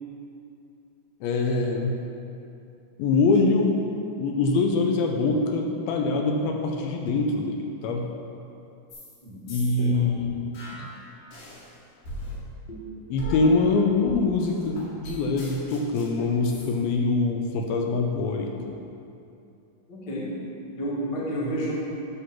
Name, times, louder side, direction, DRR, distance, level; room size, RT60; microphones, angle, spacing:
voice 1, 1.2-2.0 3.0-3.8 4.2-8.1 9.5-10.8 13.1-18.8, left 3 dB, 80° left, 1 dB, 2.5 m, -24 dB
sound 1, 8.9-9.2 9.5-11.7 12.0-16.7, equal, 65° left, 3.2 m, -38 dB
voice 2, 19.9-20.3 20.8-21.7, right 1 dB, 40° left, -6 dB, 1.5 m, -30 dB
8.3 x 5.9 x 5.8 m, 2.7 s
omnidirectional pair, 4.4 m